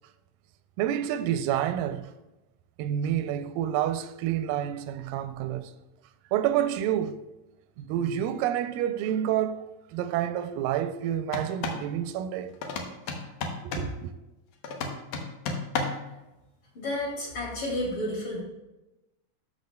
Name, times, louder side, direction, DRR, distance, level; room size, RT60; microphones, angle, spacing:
voice 1, 0.8-2.1 2.8-5.7 6.3-7.2 7.8-9.6 9.9-12.6 13.6-14.1, right 10 dB, 90° right, 2.2 m, -28 dB
sound 1, 11.3-11.9 12.6-14.0 14.6-16.1, left 4 dB, 75° left, 2.2 m, -33 dB
voice 2, 16.7-18.4, left 1 dB, 40° left, 2.7 m, -31 dB
12.0 x 6.8 x 2.2 m
omnidirectional pair, 3.9 m